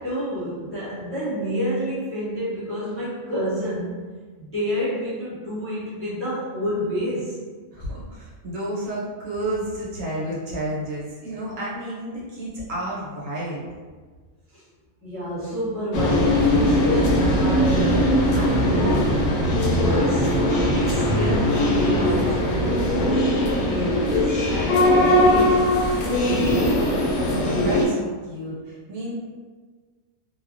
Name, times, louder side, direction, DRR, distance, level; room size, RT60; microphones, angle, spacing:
voice 1, 0.0-4.1 4.4-7.4 14.5-14.6 15.0-19.3 19.6-25.7 26.0-26.7, equal, 15° left, -11 dB, 0.5 m, -29 dB
voice 2, 7.7-13.6 27.2-29.1, right 1 dB, 70° right, -6 dB, 1.1 m, -31 dB
sound 1, 15.9-27.9, left 1 dB, 65° left, 0.7 m, -20 dB
2.4 x 2.1 x 2.4 m, 1.5 s
omnidirectional pair, 1.4 m